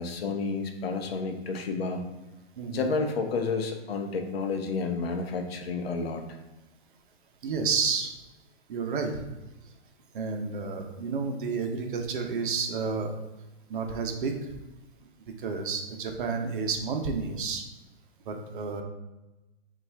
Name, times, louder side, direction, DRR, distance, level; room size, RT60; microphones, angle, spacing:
voice 1, 0.0-2.1 2.7-6.2, left 4 dB, 65° left, 5 dB, 0.7 m, -30 dB
voice 2, 2.6-2.9 7.4-8.1 8.7-9.2 10.1-13.2 13.7-14.3 15.4-17.6 18.3-18.8, right 5 dB, 50° right, 4 dB, 0.6 m, -30 dB
5.4 x 2.5 x 3.3 m, 1.1 s
hypercardioid pair, 170°, 32 cm